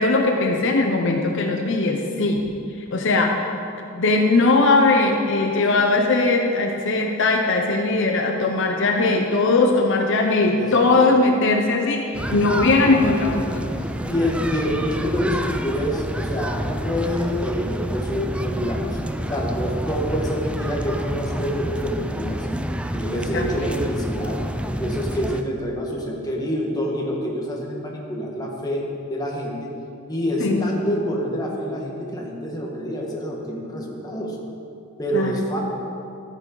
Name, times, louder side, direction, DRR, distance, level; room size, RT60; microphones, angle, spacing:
voice 1, 0.0-2.5 2.9-3.5 3.9-13.7 23.3-23.8 30.4-30.7 35.1-35.4, left 3 dB, 60° left, 2 dB, 0.8 m, -20 dB
voice 2, 10.6-11.1 14.1-18.9 19.3-22.5 22.9-24.4 24.8-29.7 30.1-34.4 35.0-35.6, equal, 20° left, -2 dB, 1.6 m, -27 dB
sound 1, 12.1-25.4, equal, 5° right, 0.4 m, -28 dB
13.5 x 9.3 x 4.0 m, 2.6 s
head